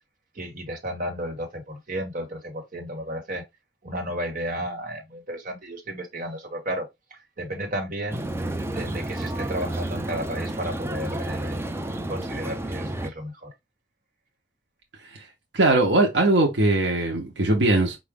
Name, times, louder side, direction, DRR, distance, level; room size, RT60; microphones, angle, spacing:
voice 1, 0.3-3.4 3.8-8.2 8.6-13.5, right 1 dB, 50° right, 1.6 m, -33 dB
sound 1, 8.1-13.1, right 1 dB, 15° right, 0.4 m, -31 dB
voice 2, 15.5-18.0, right 2 dB, 85° right, 1.0 m, -20 dB
4.9 x 2.5 x 3.5 m
head